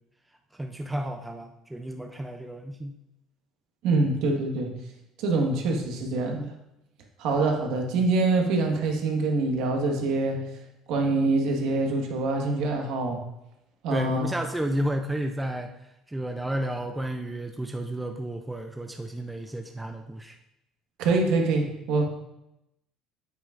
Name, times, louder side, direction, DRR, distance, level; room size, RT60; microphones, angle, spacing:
voice 1, 0.5-2.9 13.9-15.7 16.1-20.4, right 1 dB, 5° right, 4 dB, 0.4 m, -32 dB
voice 2, 3.8-4.7 5.2-6.5 7.2-10.4 10.9-13.2 13.8-14.3 21.0-22.0, right 3 dB, 60° right, 2 dB, 1.4 m, -25 dB
9.3 x 8.2 x 2.5 m, 0.87 s
cardioid pair, 175°, 0 cm